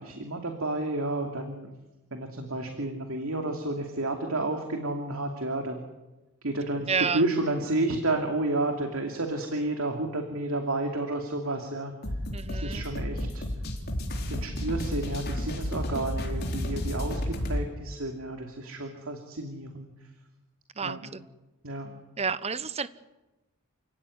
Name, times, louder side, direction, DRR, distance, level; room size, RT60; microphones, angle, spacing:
voice 1, 0.0-1.7 2.1-5.8 6.4-11.9 12.5-13.4 14.3-20.1 20.8-21.1 21.6-22.0, right 2 dB, 65° right, 4 dB, 2.8 m, -31 dB
voice 2, 6.9-7.2 12.3-12.8 20.8-21.3 22.2-22.9, right 5 dB, 30° right, 15 dB, 0.9 m, -30 dB
sound 1, 12.0-17.6, left 1 dB, 45° left, 4.3 m, -32 dB
29.0 x 16.5 x 9.8 m, 1.1 s
head